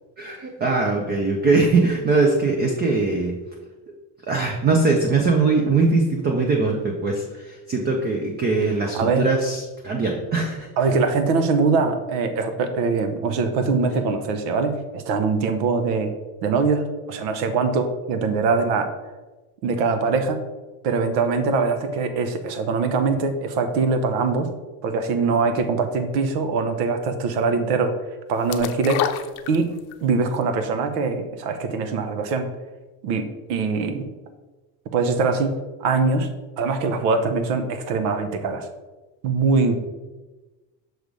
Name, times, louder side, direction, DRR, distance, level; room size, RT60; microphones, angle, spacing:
voice 1, 0.2-3.4 4.3-10.7, right 3 dB, 20° right, 2 dB, 0.5 m, -21 dB
voice 2, 8.9-9.3 10.8-16.1 16.4-18.9 19.6-20.4 20.8-24.5 24.8-27.9 28.3-29.0 29.5-29.7 30.0-32.5 33.0-34.1 34.9-36.3 36.6-38.7 39.2-39.8, right 4 dB, 75° right, 8 dB, 1.0 m, -22 dB
sound 1, 28.5-30.0 30.4-30.5, left 9 dB, 65° left, 0.6 m, -27 dB
6.2 x 3.3 x 5.2 m, 1.2 s
cardioid pair, 140°, 50 cm